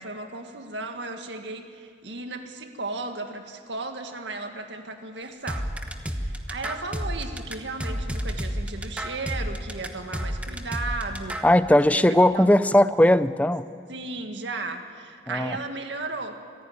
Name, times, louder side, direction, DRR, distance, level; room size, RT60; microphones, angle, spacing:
voice 1, 0.0-5.7 6.2-11.4 11.9-12.7 13.9-16.4, right 3 dB, 80° right, 6 dB, 1.9 m, -35 dB
sound 1, 5.5-11.5, equal, 5° right, 1.1 m, -30 dB
voice 2, 11.4-13.7 15.3-15.6, left 1 dB, 10° left, 14 dB, 0.5 m, -18 dB
25.5 x 15.5 x 9.4 m, 2.4 s
head